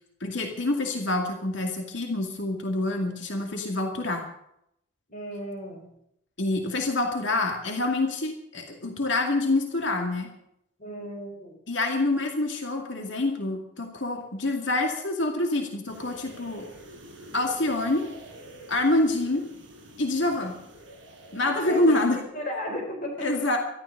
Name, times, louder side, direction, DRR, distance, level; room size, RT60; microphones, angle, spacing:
voice 1, 0.2-4.2 6.4-10.3 11.7-16.7 17.3-18.1 18.7-19.5 20.0-20.5 21.3-22.2 23.2-23.6, left 2 dB, 70° left, 2 dB, 2.2 m, -26 dB
voice 2, 5.1-5.9 10.8-11.6 21.7-23.3, left 1 dB, 40° left, 2 dB, 4.7 m, -35 dB
sound 1, 15.9-22.2, right 1 dB, 65° right, 6.2 m, -47 dB
13.5 x 13.0 x 6.7 m, 0.77 s
head